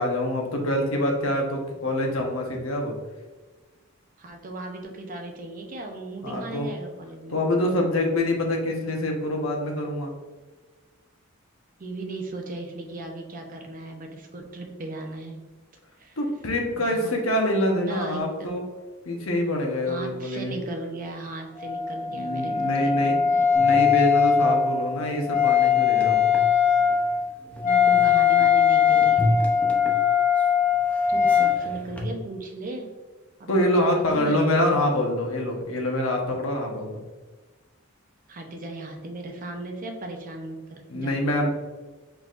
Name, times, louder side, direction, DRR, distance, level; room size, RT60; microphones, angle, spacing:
voice 1, 0.0-2.9 6.2-6.7 7.3-10.1 16.2-18.6 19.0-20.5 22.1-23.2 23.5-26.3 33.5-37.0 40.9-41.5, left 1 dB, 80° left, 1 dB, 1.0 m, -25 dB
voice 2, 4.2-7.4 11.8-15.4 16.0-16.2 16.7-17.1 17.6-18.6 19.9-23.5 27.6-29.4 31.1-32.9 33.4-34.5 38.3-41.2, right 2 dB, 40° right, 3 dB, 0.7 m, -37 dB
Wind instrument woodwind instrument, 21.6-31.6, left 7 dB, 40° left, 0.7 m, -21 dB
sound 1, 23.5-32.1, left 1 dB, 5° left, 0.6 m, -34 dB
4.6 x 3.9 x 2.5 m, 1.3 s
head